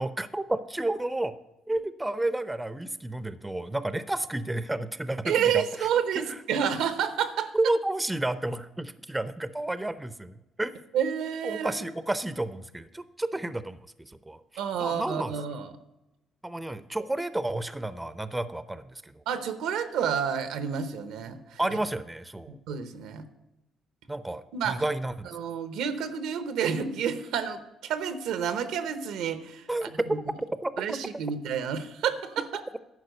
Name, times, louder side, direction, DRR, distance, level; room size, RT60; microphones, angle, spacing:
voice 1, 0.0-1.3 1.7-5.9 6.2-6.3 7.5-10.7 11.4-14.4 14.8-15.3 16.4-19.2 21.6-22.6 24.1-25.3 29.7-29.9 30.6-31.0, right 1 dB, 10° right, 13 dB, 0.5 m, -31 dB
voice 2, 5.2-7.5 10.9-11.8 14.6-15.7 19.3-21.6 22.7-23.2 24.5-24.8 25.2-29.6 29.9-30.0 30.8-32.6, right 8 dB, 85° right, 10 dB, 0.9 m, -29 dB
11.0 x 4.7 x 7.9 m, 0.97 s
cardioid pair, 90°, 0 cm